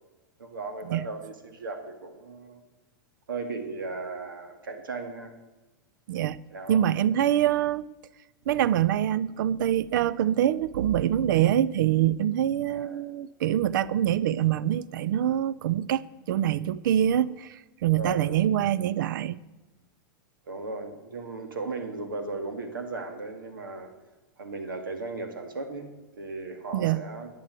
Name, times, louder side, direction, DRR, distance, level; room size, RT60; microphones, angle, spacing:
voice 1, 0.4-2.6 3.3-5.3 6.5-6.9 12.7-13.0 18.0-18.4 20.5-23.9 24.4-27.3, right 3 dB, 90° right, 5 dB, 1.9 m, -36 dB
voice 2, 6.7-7.8 8.5-19.4 26.7-27.0, right 11 dB, 70° right, 19 dB, 0.5 m, -25 dB
11.0 x 8.5 x 8.1 m, 1.1 s
hypercardioid pair, 110°, 11 cm